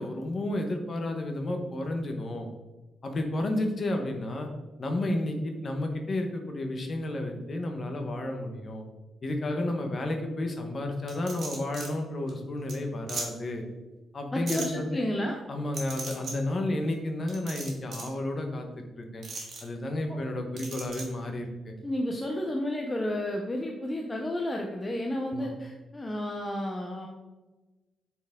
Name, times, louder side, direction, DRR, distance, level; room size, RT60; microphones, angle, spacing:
voice 1, 0.0-2.5 3.0-4.5 4.8-8.8 9.2-13.6 14.1-15.0 15.5-18.7 19.0-19.3 19.6-21.8 25.3-25.5, left 1 dB, 30° left, 4 dB, 0.9 m, -31 dB
sound 1, 11.1-11.9 12.3-12.4 12.7-12.8 13.1-13.3 14.5-14.7 15.7-16.3 17.3-18.1 19.2-19.6 20.6-21.0, right 3 dB, 45° right, 1.7 m, -37 dB
voice 2, 14.3-15.4 20.1-20.2 21.8-27.1, left 1 dB, 15° left, 1 dB, 0.6 m, -31 dB
8.2 x 4.5 x 3.6 m, 1.2 s
wide cardioid pair, 175°, 0 cm